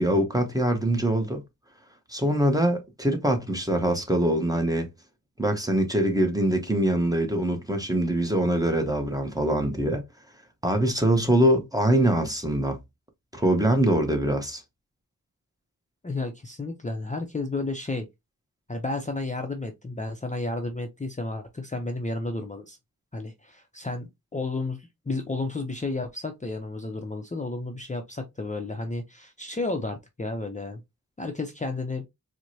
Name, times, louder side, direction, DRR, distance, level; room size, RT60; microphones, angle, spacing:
voice 1, 0.0-1.4 2.1-4.9 5.4-10.0 10.6-12.8 13.3-14.6, right 1 dB, 10° right, 0.8 m, -23 dB
voice 2, 16.0-18.1 18.7-22.8 23.1-30.8 31.2-32.0, left 2 dB, 20° left, 0.5 m, -32 dB
4.5 x 2.1 x 2.7 m
wide cardioid pair, 70°, 35 cm